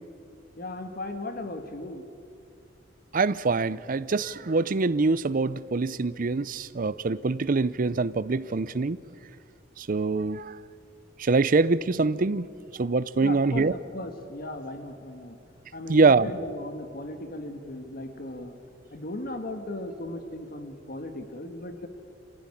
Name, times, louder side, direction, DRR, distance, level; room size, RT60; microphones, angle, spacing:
voice 1, 0.6-2.0 13.1-15.4 15.7-18.5 18.9-21.9, left 1 dB, 50° left, 7 dB, 1.6 m, -37 dB
voice 2, 3.1-9.0 9.8-10.6 11.2-12.5 12.8-13.7 15.9-16.3, right 3 dB, 45° right, 17 dB, 0.6 m, -24 dB
26.0 x 15.5 x 9.8 m, 2.4 s
head